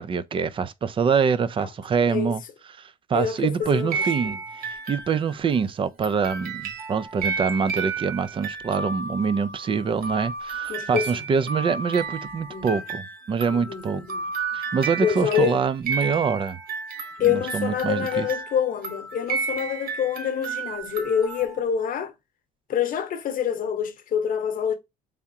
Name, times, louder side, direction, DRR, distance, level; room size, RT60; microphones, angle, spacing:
voice 1, 0.0-2.4 2.8-13.0 13.3-14.0 14.5-16.6 17.2-18.3, right 6 dB, 30° right, 0.4 m, -25 dB
voice 2, 3.1-4.4 10.7-11.3 12.5-12.8 13.5-14.3 15.0-15.6 17.2-22.1 22.7-24.7, left 8 dB, 55° left, 0.9 m, -26 dB
sound 1, 3.6-5.5 6.0-21.6, right 4 dB, 60° right, 1.1 m, -32 dB
3.6 x 3.5 x 2.7 m
cardioid pair, 110°, 17 cm